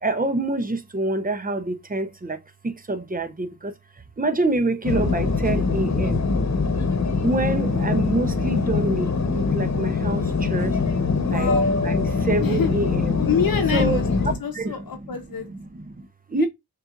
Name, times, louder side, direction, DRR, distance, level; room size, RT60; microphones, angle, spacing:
voice 1, 0.0-3.7 4.2-6.2 7.2-10.8 11.2-11.6 11.8-13.2 13.7-14.0 14.5-14.8 15.5-16.5, right 2 dB, 25° right, 0.8 m, -26 dB
sound 1, 4.8-14.4, left 4 dB, 45° left, 1.2 m, -23 dB
voice 2, 11.3-11.8 12.4-12.7 13.1-14.1 14.4-15.5 16.4-16.5, left 7 dB, 65° left, 1.0 m, -26 dB
6.6 x 2.6 x 2.5 m
cardioid pair, 45°, 37 cm